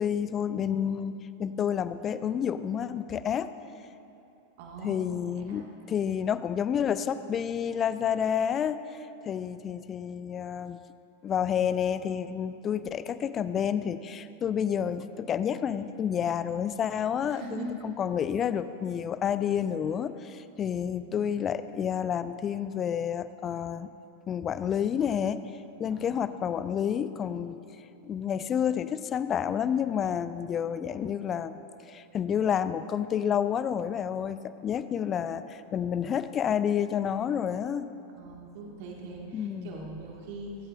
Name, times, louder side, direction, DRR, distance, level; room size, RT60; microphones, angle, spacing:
voice 1, 0.0-3.5 4.8-8.8 9.2-10.8 11.2-23.9 24.3-25.5 25.8-27.6 28.0-37.9 39.3-39.8, left 8 dB, 25° left, 13 dB, 0.6 m, -29 dB
voice 2, 4.6-5.0 5.5-5.7 17.3-17.7 25.9-26.3 38.1-40.6, right 3 dB, 50° right, -2 dB, 2.1 m, -41 dB
25.5 x 14.0 x 2.6 m, 2.8 s
figure-of-eight pair, 90°, 0 cm